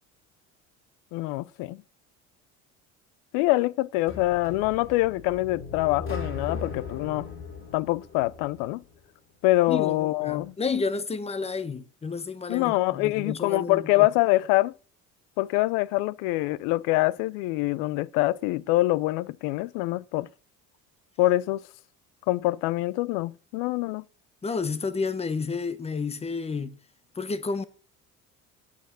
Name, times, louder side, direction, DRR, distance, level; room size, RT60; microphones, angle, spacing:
voice 1, 1.1-1.8 3.3-7.3 7.7-8.8 9.4-10.5 12.5-14.7 15.4-20.3 21.2-21.6 22.3-24.0, left 18 dB, 90° left, 0.5 m, -25 dB
sound 1, 4.1-9.0, left 4 dB, 40° left, 3.0 m, -38 dB
voice 2, 9.7-14.1 24.4-26.7 27.1-27.6, left 4 dB, 20° left, 1.1 m, -31 dB
9.0 x 6.9 x 8.1 m
cardioid pair, 105°, 32 cm